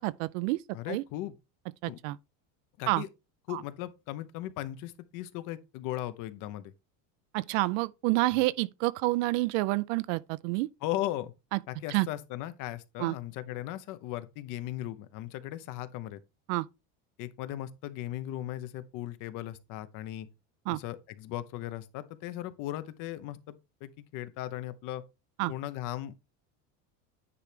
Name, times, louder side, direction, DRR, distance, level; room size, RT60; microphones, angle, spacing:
voice 1, 0.0-0.6 0.9-1.0 1.8-2.2 2.9-3.0 3.5-3.6 7.3-10.7 11.5-11.6 11.9-12.1 13.0-13.1 16.5-16.7 20.7-20.8 25.4-25.5, right 20 dB, 80° right, 0.6 m, -28 dB
voice 2, 0.7-1.3 1.9-2.0 2.8-3.1 3.5-6.7 10.8-11.3 11.7-16.2 17.2-20.3 20.7-25.0 25.5-26.1, left 14 dB, 55° left, 0.8 m, -37 dB
9.6 x 3.3 x 5.0 m
cardioid pair, 155°, 38 cm